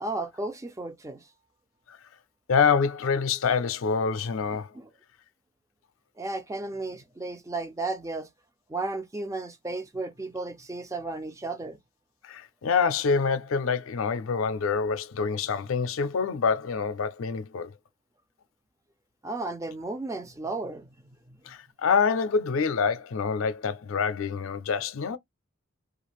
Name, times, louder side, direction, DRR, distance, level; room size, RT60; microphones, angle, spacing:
voice 1, 0.0-1.3 4.7-4.9 6.2-8.3 8.7-11.8 19.2-20.9 21.3-21.5, right 2 dB, 15° right, 0.4 m, -34 dB
voice 2, 2.5-4.7 12.2-17.7 21.5-25.2, left 5 dB, 75° left, 0.4 m, -26 dB
2.4 x 2.4 x 3.0 m
head